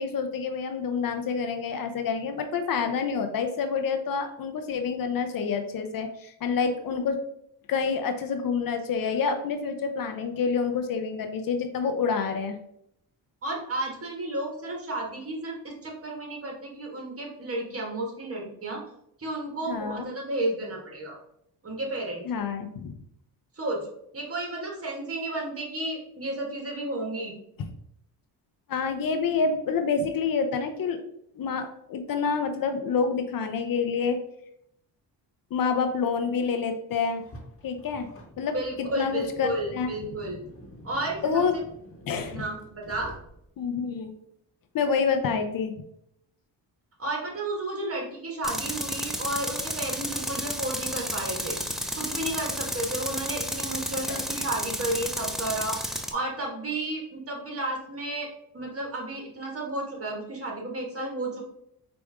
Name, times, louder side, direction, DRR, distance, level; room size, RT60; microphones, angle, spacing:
voice 1, 0.0-7.2 7.7-12.6 19.7-20.1 22.3-23.0 27.6-27.7 28.7-31.0 31.4-34.2 35.5-37.2 37.6-38.1 38.4-38.5 39.0-39.9 41.2-41.5 42.1-42.4 43.6-44.1 44.7-45.7 54.1-54.2, left 5 dB, 55° left, 6 dB, 0.6 m, -27 dB
voice 2, 13.4-18.8 19.2-21.2 21.6-22.2 23.5-23.8 24.1-27.3 38.5-40.4 40.8-41.4 42.3-43.1 47.0-51.6 52.0-58.3 58.5-61.4, right 1 dB, 35° right, -1 dB, 1.5 m, -32 dB
Car, 37.1-43.7, equal, 30° left, 1.3 m, -48 dB
Tools, 48.4-56.1, equal, ahead, 0.4 m, -32 dB
4.6 x 2.6 x 3.5 m, 0.75 s
cardioid pair, 70°, 41 cm